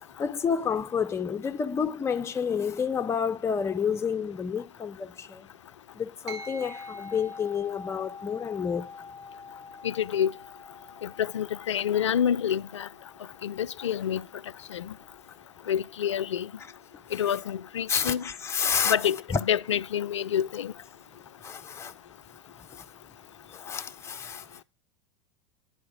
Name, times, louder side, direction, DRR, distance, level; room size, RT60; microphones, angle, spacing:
voice 1, 0.2-5.4 6.0-8.9 17.1-17.2 17.9-19.0 19.3-19.4 21.4-21.9 23.6-24.4, left 7 dB, 20° left, 0.6 m, -29 dB
sound 1, 6.3-16.0, left 2 dB, 80° right, 1.3 m, -46 dB
voice 2, 9.8-10.3 11.0-12.9 13.4-14.3 14.7-14.9 15.7-16.5 17.1-18.3 18.8-20.7, left 9 dB, 85° left, 0.4 m, -28 dB
10.0 x 4.8 x 6.2 m
hypercardioid pair, 85°, 15 cm